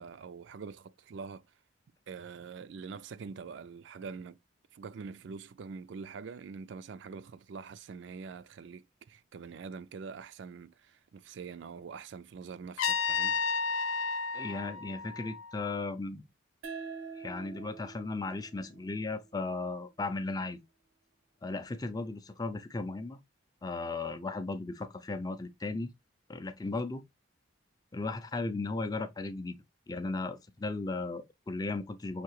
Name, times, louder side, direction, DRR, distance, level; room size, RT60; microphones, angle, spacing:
voice 1, 0.0-1.5 2.1-4.4 4.7-13.4, right 5 dB, 65° right, 0.4 m, -44 dB
Trumpet, 12.8-15.7, left 5 dB, 85° left, 0.5 m, -32 dB
voice 2, 14.3-16.2 17.2-20.6 21.4-23.2 23.6-25.9 26.3-27.0 27.9-29.6 29.9-32.2, left 3 dB, 20° left, 0.4 m, -36 dB
sound 1, 16.6-19.8, right 5 dB, 90° right, 0.9 m, -46 dB
5.8 x 2.7 x 3.0 m
head